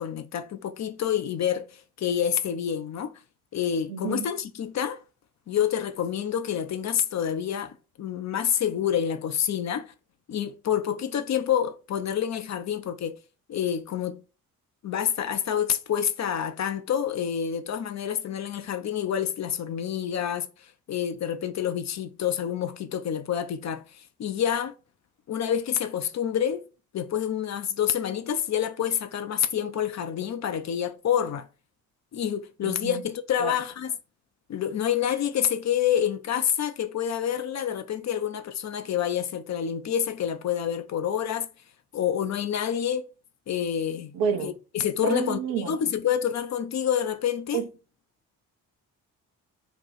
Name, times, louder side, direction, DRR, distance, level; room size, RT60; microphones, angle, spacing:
voice 1, 0.0-3.1 3.5-5.0 5.5-9.9 10.3-13.2 13.5-14.2 14.8-24.7 25.3-26.6 26.9-31.5 32.1-33.9 34.5-41.5 41.9-43.1 43.5-44.1 44.4-47.6, left 9 dB, 40° left, 0.5 m, -28 dB
voice 2, 3.9-4.3 32.6-33.0 33.4-33.5 44.1-44.5 45.0-45.8 47.5-47.7, right 7 dB, 70° right, 0.9 m, -29 dB
2.9 x 2.2 x 3.9 m
hypercardioid pair, 45°, 43 cm